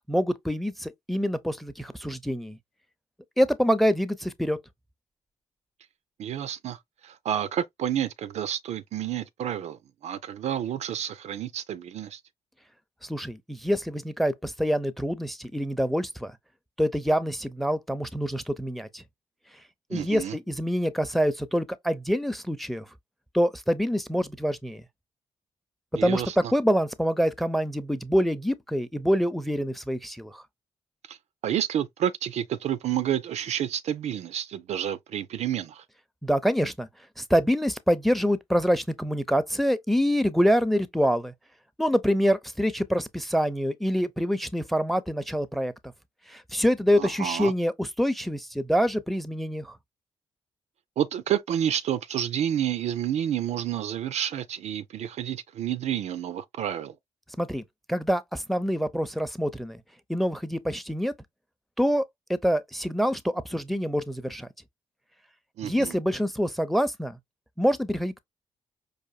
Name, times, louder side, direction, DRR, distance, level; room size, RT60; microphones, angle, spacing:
voice 1, 0.1-2.6 3.4-4.6 13.0-16.4 16.8-19.0 19.9-22.9 23.3-24.8 26.0-26.2 26.5-30.4 36.2-36.9 37.2-41.3 41.8-45.7 46.3-49.8 57.4-57.6 57.9-59.8 60.1-61.1 61.8-64.5 65.6-67.2 67.6-68.2, equal, ahead, 0.5 m, -26 dB
voice 2, 6.2-12.2 19.9-20.4 25.9-26.5 31.1-31.2 31.4-35.8 46.9-47.5 51.0-57.0 65.6-65.9, right 10 dB, 60° right, 0.4 m, -30 dB
4.8 x 2.5 x 2.2 m
hypercardioid pair, 45°, 13 cm